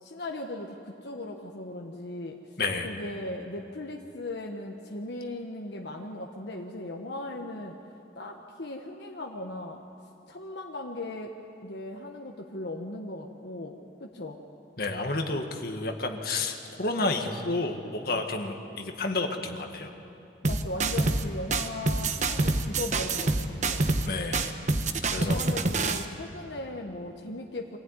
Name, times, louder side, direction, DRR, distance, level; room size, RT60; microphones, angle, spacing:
voice 1, 0.0-2.4 2.8-7.8 8.1-9.8 10.3-11.3 11.6-14.4 20.4-23.9 25.1-27.8, left 2 dB, 75° left, 1 dB, 1.3 m, -38 dB
voice 2, 14.8-19.9 24.1-24.5 25.1-25.4, left 2 dB, 55° left, 4 dB, 1.9 m, -30 dB
sound 1, 20.4-21.2 21.5-24.1 24.3-26.0, right 3 dB, 40° right, 1.0 m, -26 dB
24.5 x 15.5 x 9.8 m, 2.9 s
head